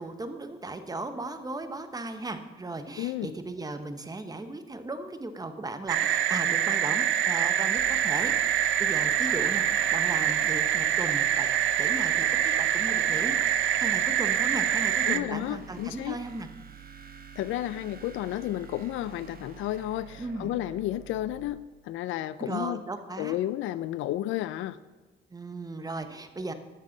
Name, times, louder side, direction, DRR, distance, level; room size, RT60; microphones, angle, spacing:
voice 1, 0.0-9.7 9.9-11.5 11.8-16.5 20.2-20.5 22.4-23.4 25.3-26.5, right 2 dB, 20° right, 9 dB, 0.9 m, -36 dB
voice 2, 3.0-3.3 15.1-16.2 17.4-21.6 21.8-22.8 23.2-24.8, left 13 dB, 85° left, 16 dB, 0.4 m, -32 dB
sound 1, 5.9-15.2, right 10 dB, 75° right, 0.6 m, -25 dB
sound 2, 7.8-21.5, right 8 dB, 50° right, 0.9 m, -48 dB
12.0 x 7.4 x 3.9 m, 1.2 s
cardioid pair, 90°, 20 cm